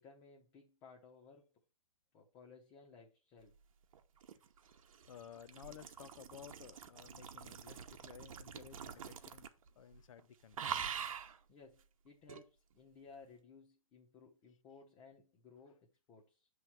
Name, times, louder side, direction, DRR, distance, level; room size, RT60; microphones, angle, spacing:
voice 1, 0.0-1.5 2.1-3.5 11.5-16.5, left 4 dB, 20° left, 0.9 m, -59 dB
sound 1, 3.9-9.7 9.9-10.2 10.5-11.4 12.3-12.4, right 8 dB, 65° right, 0.9 m, -45 dB
voice 2, 5.1-9.5 9.8-10.8, left 9 dB, 65° left, 0.6 m, -55 dB
6.7 x 3.3 x 5.9 m
hypercardioid pair, 150°, 18 cm